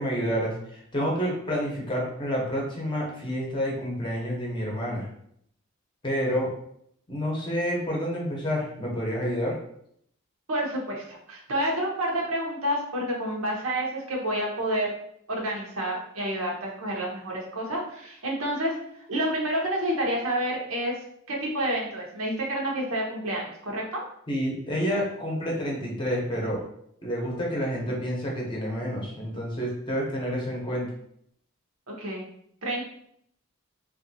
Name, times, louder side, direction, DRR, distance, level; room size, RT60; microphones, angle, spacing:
voice 1, 0.0-5.1 6.0-6.5 7.1-9.6 24.3-26.6 27.0-30.9, equal, 25° left, -2 dB, 0.7 m, -29 dB
voice 2, 10.5-14.9 15.3-18.8 19.1-21.0 21.3-24.0 31.9-32.2 32.6-32.8, right 1 dB, 85° right, -2 dB, 0.9 m, -29 dB
3.2 x 2.5 x 2.7 m, 0.70 s
head